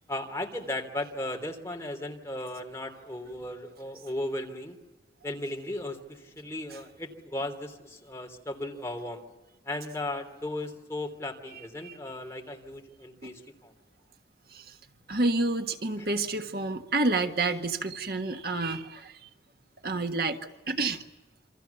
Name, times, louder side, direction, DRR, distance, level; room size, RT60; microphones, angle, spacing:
voice 1, 0.1-4.7 5.2-9.2 9.6-13.7 16.0-16.2, left 1 dB, 15° left, 2 dB, 3.3 m, -36 dB
voice 2, 15.1-19.3 19.8-20.4 20.7-21.0, right 2 dB, 60° right, 6 dB, 1.6 m, -29 dB
28.0 x 25.5 x 7.1 m, 1.1 s
head